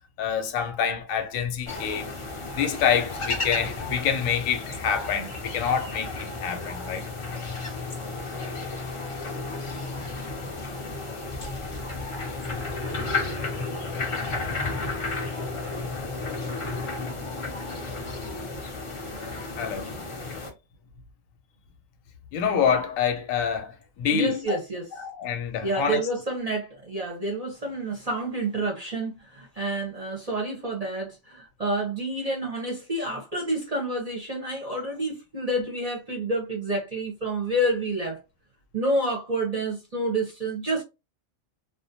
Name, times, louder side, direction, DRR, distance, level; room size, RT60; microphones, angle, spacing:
voice 1, 0.2-2.1 2.5-7.0 19.6-19.9 22.3-24.6 25.0-26.0, left 7 dB, 85° left, 1.0 m, -26 dB
sound 1, 1.7-20.5, left 3 dB, 50° left, 0.4 m, -33 dB
voice 2, 24.1-24.9 25.6-38.2 38.7-40.8, right 1 dB, 40° right, 0.6 m, -29 dB
2.4 x 2.1 x 2.6 m
omnidirectional pair, 1.3 m